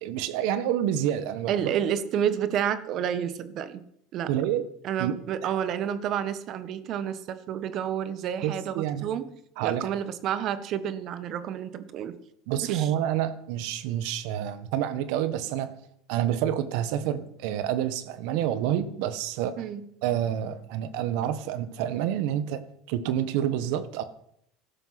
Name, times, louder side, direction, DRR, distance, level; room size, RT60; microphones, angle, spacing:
voice 1, 0.0-1.8 4.3-4.7 5.0-5.2 5.4-5.5 8.4-9.1 9.6-9.9 12.5-15.7 16.1-19.5 20.0-22.6 22.9-24.0, right 11 dB, 70° right, 13 dB, 1.5 m, -28 dB
voice 2, 1.5-3.8 4.1-4.3 4.8-9.3 9.6-12.2 12.6-12.9 19.6-19.9, right 9 dB, 50° right, 13 dB, 1.5 m, -30 dB
16.0 x 12.5 x 6.0 m, 0.70 s
supercardioid pair, 115°, 0 cm